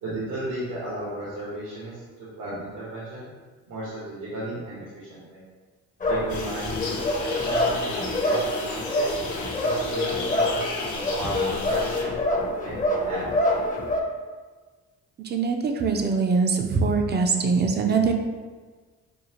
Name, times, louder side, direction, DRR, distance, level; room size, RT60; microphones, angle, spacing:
voice 1, 0.0-3.3 3.7-5.4 6.1-9.1 9.6-12.1 12.6-13.5, right 1 dB, 75° right, -8 dB, 1.2 m, -34 dB
sound 1, 6.0-14.0, left 1 dB, 25° left, 0.7 m, -26 dB
sound 2, 6.3-12.0, left 3 dB, 65° left, 0.9 m, -34 dB
voice 2, 15.2-18.1, right 4 dB, 35° right, 4 dB, 0.5 m, -23 dB
5.4 x 2.4 x 2.8 m, 1.4 s
cardioid pair, 85°, 31 cm